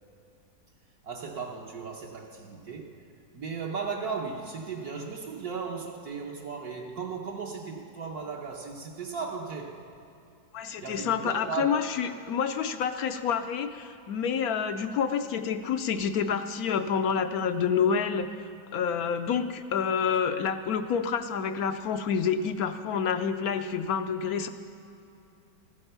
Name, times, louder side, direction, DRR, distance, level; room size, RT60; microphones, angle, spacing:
voice 1, 1.0-2.9 3.3-9.8 10.8-11.7, right 5 dB, 65° right, -1 dB, 1.4 m, -36 dB
voice 2, 10.5-18.3 18.7-24.5, left 7 dB, 70° left, 9 dB, 1.0 m, -28 dB
14.5 x 8.9 x 6.8 m, 2.7 s
omnidirectional pair, 1.8 m